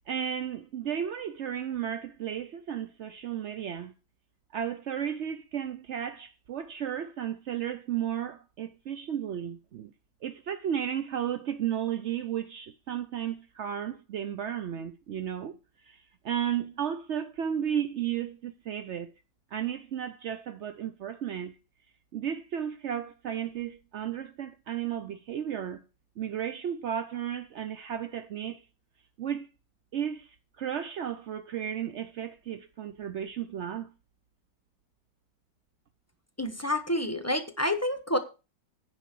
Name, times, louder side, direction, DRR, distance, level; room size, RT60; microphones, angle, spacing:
voice 1, 0.1-3.9 4.5-9.9 10.2-15.6 15.8-19.1 19.5-21.6 22.1-25.8 26.2-28.6 29.2-29.5 29.9-33.9, right 9 dB, 65° right, 0.7 m, -34 dB
voice 2, 36.4-38.2, left 1 dB, 15° left, 0.7 m, -28 dB
9.9 x 5.2 x 7.5 m
omnidirectional pair, 1.9 m